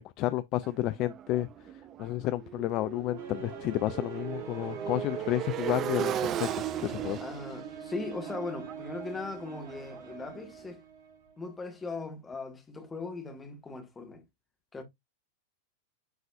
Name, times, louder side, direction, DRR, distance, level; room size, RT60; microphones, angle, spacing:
voice 1, 0.2-1.5 2.0-7.2, left 15 dB, 40° left, 0.3 m, -31 dB
Motorcycle, 0.6-10.5, right 10 dB, 30° right, 0.4 m, -37 dB
sound 1, 3.2-11.5, right 6 dB, 55° right, 1.6 m, -44 dB
voice 2, 7.2-10.8 11.4-14.2 14.7-14.8, left 3 dB, 15° left, 1.8 m, -39 dB
9.5 x 3.9 x 2.5 m
figure-of-eight pair, 90°, 0 cm